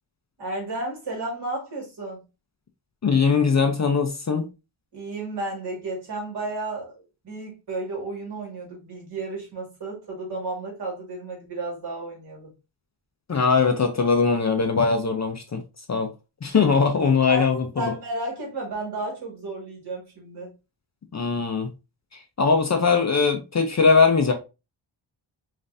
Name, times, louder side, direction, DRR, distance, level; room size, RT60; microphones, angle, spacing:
voice 1, 0.4-2.2 4.9-12.5 17.3-20.5, right 2 dB, 55° right, 2.0 m, -33 dB
voice 2, 3.0-4.5 13.3-15.6 15.9-16.1 16.4-17.9 21.1-21.7 22.1-24.3, left 5 dB, 35° left, 0.5 m, -21 dB
5.3 x 2.5 x 2.6 m
wide cardioid pair, 180°, 47 cm